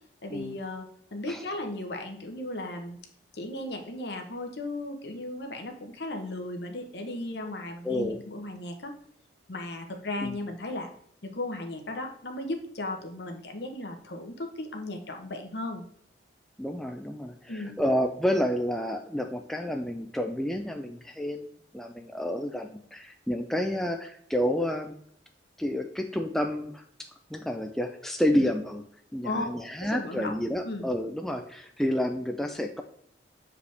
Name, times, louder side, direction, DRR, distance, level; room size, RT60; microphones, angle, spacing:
voice 1, 0.2-3.0 3.3-9.0 9.5-10.9 11.2-15.8 17.5-17.8 28.3-28.5 29.2-30.4 30.6-30.9, left 2 dB, 60° left, 4 dB, 1.0 m, -36 dB
voice 2, 7.8-8.2 10.2-10.3 16.6-21.5 21.7-24.9 25.6-26.8 27.3-28.8 29.1-32.8, equal, ahead, 4 dB, 0.3 m, -29 dB
6.4 x 4.9 x 3.3 m, 0.65 s
head